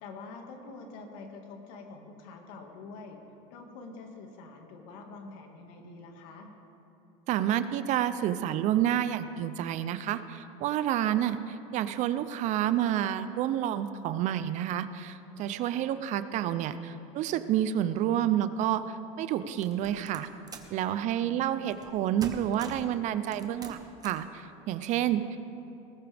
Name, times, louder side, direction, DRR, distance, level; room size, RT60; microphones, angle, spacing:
voice 1, 0.0-3.2 3.5-6.5 15.9-16.1 21.2-21.7, left 3 dB, 75° left, 3 dB, 2.0 m, -46 dB
voice 2, 7.3-20.3 20.7-25.4, right 11 dB, 50° right, 13 dB, 0.6 m, -29 dB
sound 1, 19.6-20.8 21.7-21.9 22.2-22.9 23.3-24.3, right 4 dB, 25° right, 1.1 m, -44 dB
19.5 x 14.0 x 3.5 m, 2.8 s
cardioid pair, 135°, 16 cm